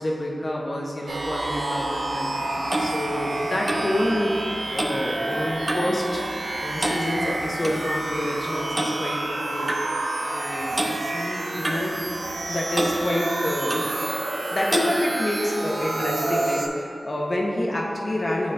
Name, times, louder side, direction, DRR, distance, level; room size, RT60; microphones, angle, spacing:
voice 1, 0.0-4.3 4.7-6.3 6.6-9.7 10.2-12.0 12.5-13.8 14.2-18.5, left 1 dB, 50° left, -2 dB, 1.0 m, -28 dB
sound 1, 1.1-16.7, right 2 dB, 85° right, 0.5 m, -29 dB
Clock, 2.1-6.0 6.3-6.5 6.8-7.8 8.8-9.0 9.7-9.8 10.7-11.0 11.6-12.5 12.7-13.0 13.7-13.9 14.7-14.9, right 1 dB, 35° right, 0.6 m, -29 dB
9.3 x 4.1 x 2.6 m, 2.5 s
wide cardioid pair, 60°, 0 cm